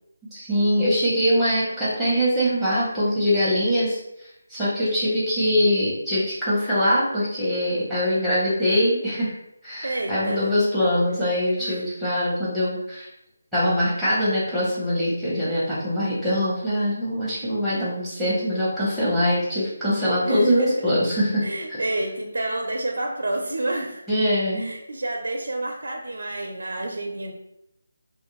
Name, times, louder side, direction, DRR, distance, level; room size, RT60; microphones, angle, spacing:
voice 1, 0.3-4.0 4.5-9.3 9.6-13.1 13.5-21.4 21.7-21.8 24.1-24.7, equal, ahead, -10 dB, 0.9 m, -23 dB
voice 2, 9.8-10.6 11.6-11.8 20.2-20.7 21.4-24.0 24.6-27.3, right 2 dB, 80° right, 1 dB, 0.4 m, -29 dB
2.5 x 2.2 x 3.0 m, 0.83 s
figure-of-eight pair, 170°, 0 cm